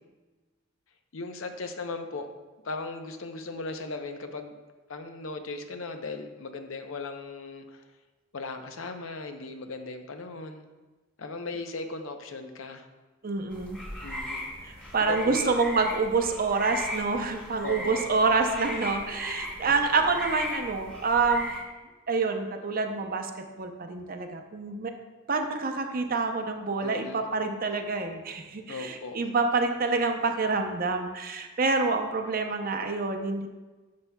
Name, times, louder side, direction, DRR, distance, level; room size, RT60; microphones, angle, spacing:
voice 1, 1.1-2.3 2.6-4.6 4.9-7.9 8.3-10.7 11.2-12.9 14.0-14.4 15.0-15.6 17.6-18.0 19.7-20.0 26.8-27.2 28.7-29.2, left 3 dB, 70° left, 6 dB, 0.7 m, -37 dB
voice 2, 13.2-13.8 14.9-21.5 22.1-23.3 23.6-24.9 25.3-33.5, right 4 dB, 45° right, 5 dB, 0.6 m, -27 dB
sound 1, 13.5-21.6, left 1 dB, 5° left, 1.4 m, -37 dB
10.5 x 6.8 x 2.2 m, 1.2 s
head